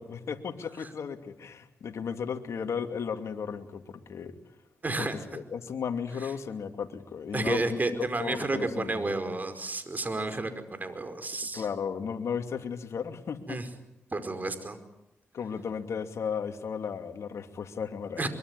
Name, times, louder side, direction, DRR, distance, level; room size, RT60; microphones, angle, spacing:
voice 1, 0.0-4.3 5.0-9.0 11.5-13.6 15.3-18.3, left 6 dB, 75° left, 6 dB, 2.6 m, -35 dB
voice 2, 4.8-5.1 6.2-6.3 7.3-11.6 13.5-13.7 14.1-14.8 18.2-18.3, right 2 dB, 35° right, 9 dB, 4.9 m, -31 dB
24.0 x 23.5 x 9.7 m, 0.85 s
cardioid pair, 60°, 5 cm